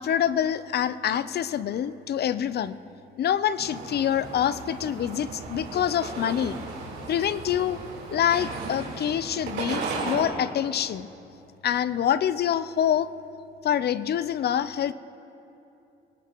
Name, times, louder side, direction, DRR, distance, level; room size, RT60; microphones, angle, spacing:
voice 1, 0.0-2.8 3.2-6.5 7.1-7.8 8.1-11.1 11.6-13.1 13.6-14.9, left 9 dB, 55° left, 15 dB, 0.6 m, -26 dB
sound 1, 3.6-10.2, right 4 dB, 80° right, 3.8 m, -35 dB
24.0 x 18.5 x 3.0 m, 2.8 s
cardioid pair, 90°, 20 cm